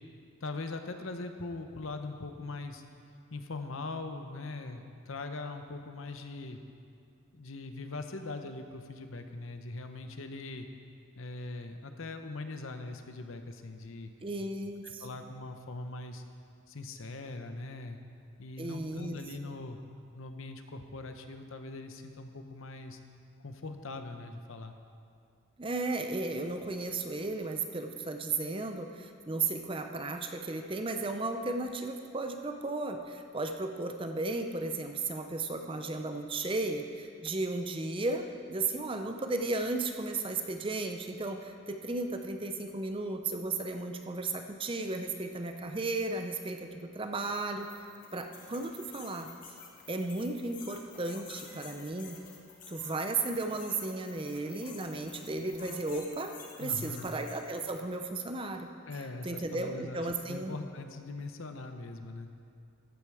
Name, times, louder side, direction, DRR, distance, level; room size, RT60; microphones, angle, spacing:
voice 1, 0.4-2.8 3.3-6.6 7.3-10.7 11.2-14.1 14.8-16.2 16.7-18.0 18.4-19.8 20.1-23.0 23.4-24.7 56.6-57.1 58.9-62.3, left 3 dB, 70° left, 7 dB, 0.8 m, -41 dB
voice 2, 14.2-15.1 18.6-19.2 19.4-19.5 25.6-46.7 46.9-49.3 49.9-52.2 52.7-58.7 59.2-60.6, right 3 dB, 25° right, 6 dB, 0.6 m, -35 dB
sound 1, 47.0-58.0, left 5 dB, 40° left, 1.5 m, -51 dB
14.0 x 8.8 x 4.8 m, 2.4 s
head